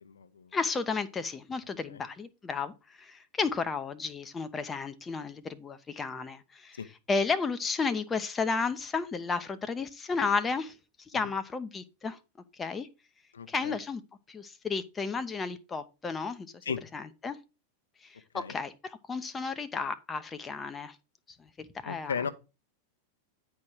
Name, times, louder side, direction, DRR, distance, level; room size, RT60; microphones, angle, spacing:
voice 1, 0.0-0.5 6.8-6.9 13.3-13.7 16.7-16.8 18.3-18.5 21.8-22.3, left 6 dB, 70° left, 0.7 m, -35 dB
voice 2, 0.5-12.2 12.5-12.9 13.5-14.0 14.3-16.5 16.9-17.4 18.0-21.0 21.3-22.1, left 4 dB, 15° left, 0.7 m, -33 dB
9.5 x 4.5 x 4.7 m
figure-of-eight pair, 90°, 0 cm